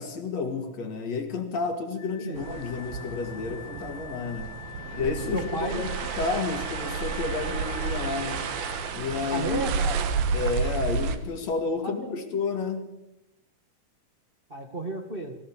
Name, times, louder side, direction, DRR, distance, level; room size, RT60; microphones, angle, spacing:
voice 1, 0.0-4.5 4.9-8.5 8.9-9.6 10.3-12.9, left 4 dB, 50° left, 4 dB, 3.1 m, -31 dB
Wind instrument woodwind instrument, 2.0-9.0, left 10 dB, 80° left, 3.2 m, -44 dB
sound 1, 2.4-11.2, right 5 dB, 80° right, 3.2 m, -31 dB
voice 2, 5.3-5.9 9.3-9.9 11.8-12.3 14.5-15.3, right 1 dB, 50° right, 2 dB, 0.6 m, -33 dB
23.0 x 16.0 x 7.4 m, 0.93 s
omnidirectional pair, 4.3 m